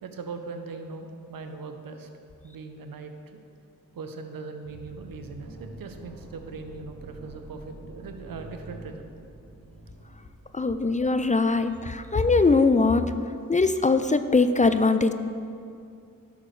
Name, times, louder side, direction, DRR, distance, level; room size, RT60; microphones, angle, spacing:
voice 1, 0.0-2.1 2.4-3.4 3.9-9.1, right 4 dB, 80° right, 6 dB, 0.7 m, -40 dB
sound 1, 4.6-12.0, right 2 dB, 55° right, 1.2 m, -47 dB
voice 2, 10.5-13.1 13.5-15.1, left 3 dB, 25° left, 10 dB, 0.3 m, -21 dB
10.5 x 6.5 x 3.2 m, 2.4 s
cardioid pair, 40°, 34 cm